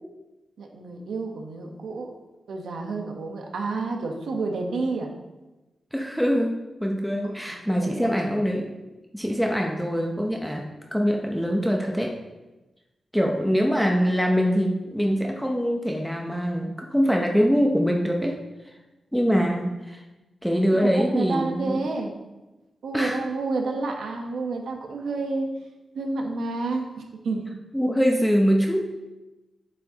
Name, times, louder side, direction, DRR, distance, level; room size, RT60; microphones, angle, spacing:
voice 1, 0.6-2.1 2.5-5.1 7.8-8.1 20.7-22.1 22.8-25.5 25.9-27.4, right 3 dB, 85° right, 2 dB, 1.1 m, -29 dB
voice 2, 5.9-8.7 9.1-10.6 10.9-12.1 13.1-18.3 19.1-20.0 20.4-21.8 22.9-23.2 27.7-28.9, equal, ahead, 0 dB, 0.7 m, -23 dB
7.7 x 7.3 x 2.9 m, 1.1 s
wide cardioid pair, 115°, 0 cm